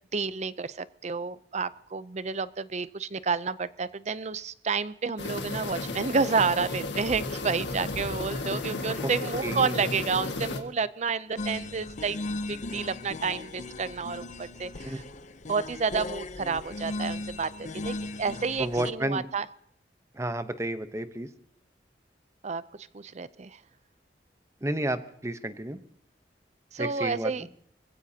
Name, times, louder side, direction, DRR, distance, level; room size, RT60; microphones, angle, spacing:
voice 1, 0.1-12.2 12.5-15.0 15.5-19.5 22.4-22.6 22.9-23.6 26.7-27.4, right 5 dB, 40° right, 16 dB, 0.6 m, -30 dB
sound 1, 5.2-10.6, left 2 dB, 80° left, 1.8 m, -33 dB
voice 2, 9.4-10.0 14.8-15.0 18.6-19.3 20.1-21.3 24.6-25.8 26.8-27.5, right 1 dB, 15° right, 11 dB, 0.9 m, -31 dB
sound 2, 11.4-18.9, left 2 dB, 45° left, 0.7 m, -37 dB
25.5 x 16.0 x 2.8 m, 0.67 s
head